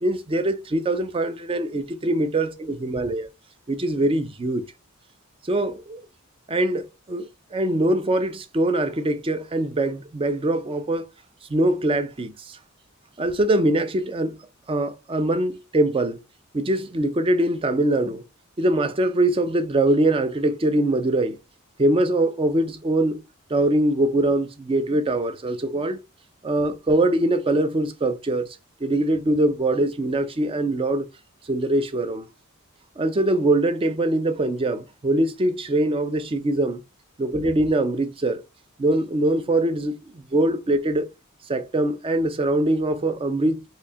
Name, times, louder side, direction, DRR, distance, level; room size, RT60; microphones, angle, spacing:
voice 1, 0.0-2.5 2.8-3.3 3.7-4.7 5.4-6.0 6.5-11.1 11.5-12.6 13.2-14.4 14.7-16.2 16.5-18.2 18.6-21.4 21.8-23.2 23.5-26.0 26.4-28.5 28.8-31.1 31.5-32.3 33.0-36.8 37.2-38.4 38.8-40.0 40.3-41.1 41.5-43.6, right 1 dB, 25° right, 0.4 m, -23 dB
4.5 x 2.7 x 2.3 m
head